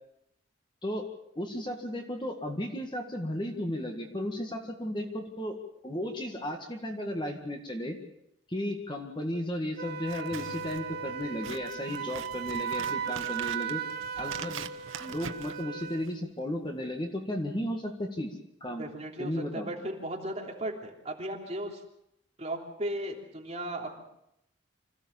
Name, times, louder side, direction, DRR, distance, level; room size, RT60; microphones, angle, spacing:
voice 1, 1.4-5.6 5.8-8.0 8.5-13.8 14.2-14.6 15.0-18.8 19.2-19.8, left 1 dB, 25° left, 4 dB, 1.8 m, -34 dB
Wind instrument woodwind instrument, 9.8-16.1, right 7 dB, 50° right, 1.2 m, -36 dB
Scissors, 10.0-16.3, right 6 dB, 85° right, 1.1 m, -44 dB
Bass guitar, 10.3-13.4, equal, 10° right, 5.1 m, -54 dB
voice 2, 18.8-21.8 22.4-24.0, right 1 dB, 30° right, 0 dB, 3.2 m, -36 dB
25.5 x 15.5 x 7.2 m, 0.80 s
head